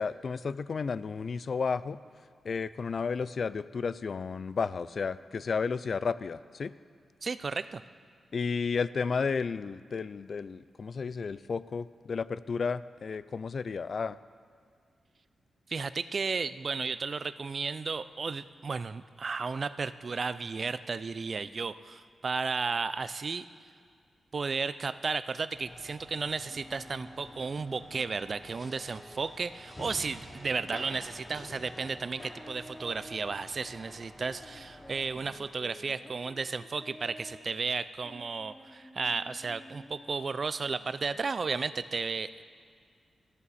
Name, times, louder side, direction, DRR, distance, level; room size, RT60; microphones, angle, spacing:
voice 1, 0.0-2.0 2.4-6.7 8.3-14.2, left 5 dB, 55° left, 16 dB, 0.4 m, -32 dB
voice 2, 7.2-7.8 15.7-23.4 24.3-42.3, right 4 dB, 45° right, 14 dB, 0.4 m, -34 dB
sound 1, 25.5-35.4, left 1 dB, 25° left, 3.1 m, -49 dB
sound 2, 26.5-41.3, equal, 10° left, 1.0 m, -53 dB
18.0 x 14.0 x 4.2 m, 2.1 s
wide cardioid pair, 110°, 0 cm